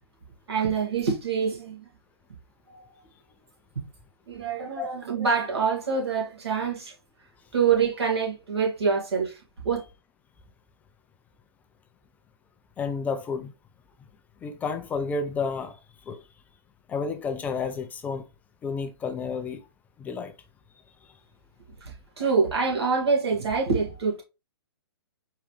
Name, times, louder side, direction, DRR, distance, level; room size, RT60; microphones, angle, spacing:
voice 1, 0.5-1.9 2.7-2.8 4.3-6.9 7.5-9.8 21.8-24.2, right 5 dB, 75° right, 2.0 m, -26 dB
voice 2, 12.8-13.5 14.4-16.3 16.9-18.3 18.6-19.7 20.0-20.3 21.0-21.2, left 4 dB, 10° left, 0.3 m, -31 dB
4.8 x 3.2 x 3.1 m
hypercardioid pair, 135°, 14 cm